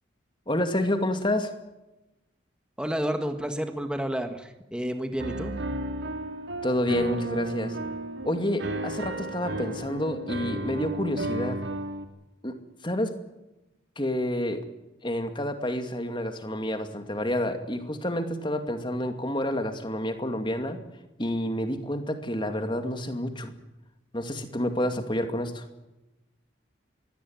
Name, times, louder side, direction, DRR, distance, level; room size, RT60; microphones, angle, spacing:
voice 1, 0.5-1.5 6.6-7.8 8.2-11.6 12.4-12.6 12.8-13.2 14.0-14.7 15.0-20.8 21.2-23.5 24.1-25.6, left 1 dB, 25° left, 7 dB, 2.4 m, -29 dB
voice 2, 2.8-5.5, equal, 5° right, 6 dB, 1.7 m, -30 dB
Piano, 5.2-12.0, right 1 dB, 75° right, 2.9 m, -33 dB
22.0 x 17.5 x 9.4 m, 0.99 s
head